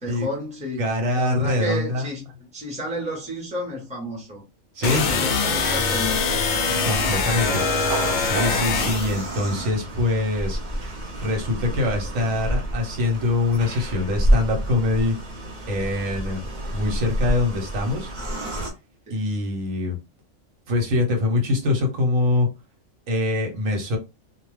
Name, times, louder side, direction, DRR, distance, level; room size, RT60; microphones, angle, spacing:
voice 1, 0.0-0.8 1.1-4.4 4.8-6.5 19.1-19.2, left 1 dB, 5° right, 0.8 m, -32 dB
voice 2, 0.8-2.1 4.7-5.0 6.8-7.6 8.2-10.8 11.2-15.2 15.7-16.4 16.7-18.1 19.1-20.0 20.7-22.5 23.1-24.0, left 2 dB, 85° right, 1.3 m, -24 dB
sound 1, 4.8-9.2, left 4 dB, 70° left, 0.4 m, -23 dB
sound 2, 4.8-18.7, right 1 dB, 40° right, 0.9 m, -29 dB
2.4 x 2.3 x 3.1 m
omnidirectional pair, 1.3 m